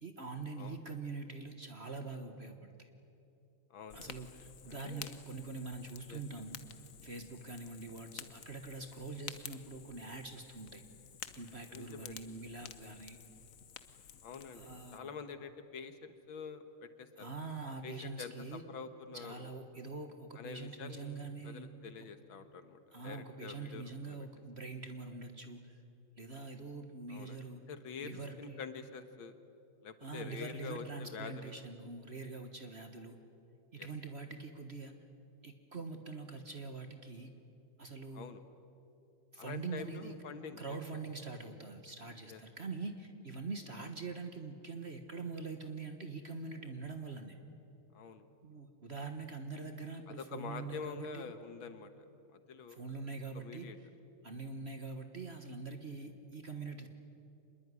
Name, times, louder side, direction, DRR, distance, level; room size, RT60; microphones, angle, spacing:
voice 1, 0.0-2.9 3.9-6.6 7.0-10.8 11.3-13.2 14.5-15.2 17.2-18.6 19.1-21.7 22.9-25.8 26.2-27.6 28.0-28.6 30.0-33.2 33.7-34.9 35.4-37.3 37.8-38.3 39.3-40.1 40.6-47.4 48.4-51.3 52.7-53.7 54.2-56.9, right 3 dB, 35° right, 6 dB, 1.4 m, -44 dB
voice 2, 3.7-4.1 4.7-5.1 6.1-6.2 11.7-12.2 14.2-17.3 17.8-19.5 20.4-24.2 27.1-27.4 27.7-28.1 28.4-29.4 29.8-31.5 33.8-33.9 38.1-38.4 39.4-40.8 42.3-42.4 47.9-48.3 50.1-51.9 52.3-52.8 53.3-53.8, left 6 dB, 70° left, 10 dB, 2.0 m, -46 dB
Fire, 3.9-15.0, left 8 dB, 50° left, 1.0 m, -52 dB
26.5 x 21.0 x 9.8 m, 2.7 s
omnidirectional pair, 2.3 m